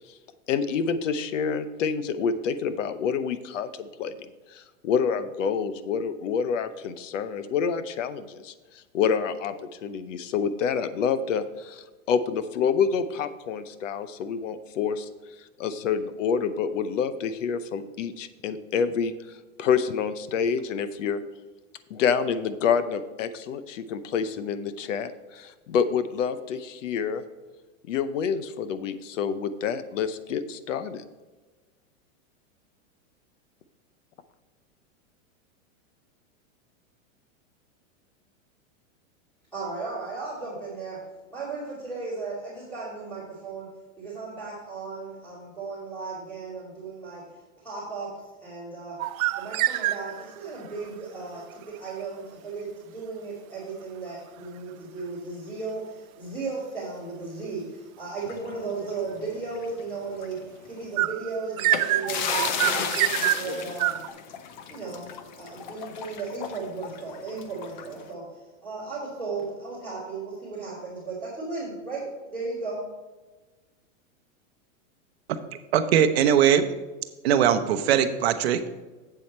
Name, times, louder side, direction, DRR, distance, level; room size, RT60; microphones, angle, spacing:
voice 1, 0.5-9.5 9.8-15.1 15.6-21.2 21.9-27.2 27.9-31.0, left 6 dB, 65° left, 13 dB, 0.8 m, -28 dB
voice 2, 39.5-41.0 41.3-43.7 44.0-47.2 47.6-48.1 48.4-49.0 49.4-60.4 60.6-64.0 64.7-72.0 72.3-72.8, right 4 dB, ahead, -13 dB, 2.6 m, -35 dB
sound 1, 49.0-50.4 61.0-64.1, right 16 dB, 80° right, 0.5 m, -26 dB
sound 2, 58.3-59.8 60.2-60.3 61.6-68.1, left 7 dB, 35° left, 0.5 m, -33 dB
voice 3, 75.7-76.7 77.2-78.7, right 9 dB, 50° right, 10 dB, 0.8 m, -20 dB
7.9 x 7.5 x 4.2 m, 1.3 s
supercardioid pair, 175°, 41 cm